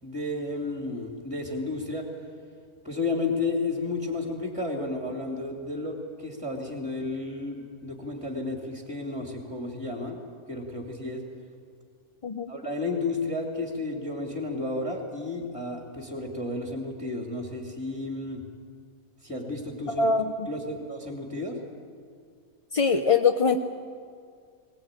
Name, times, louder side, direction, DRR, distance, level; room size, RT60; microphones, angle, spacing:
voice 1, 0.0-2.1 2.8-10.2 10.5-11.2 12.5-18.4 19.2-20.1 20.5-21.6, left 2 dB, 5° right, 1 dB, 2.6 m, -32 dB
voice 2, 19.9-20.5 22.7-23.6, left 5 dB, 45° left, 7 dB, 0.4 m, -23 dB
20.0 x 19.5 x 9.0 m, 2.1 s
omnidirectional pair, 1.6 m